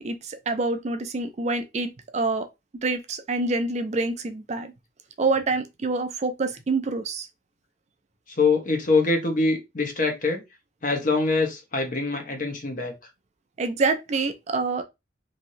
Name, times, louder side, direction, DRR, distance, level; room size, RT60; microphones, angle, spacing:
voice 1, 0.0-2.5 2.8-4.7 5.2-7.3 13.6-14.8, right 3 dB, 35° right, 0.4 m, -26 dB
voice 2, 8.4-10.4 10.8-12.9, left 3 dB, 45° left, 0.9 m, -24 dB
3.1 x 2.6 x 2.6 m
head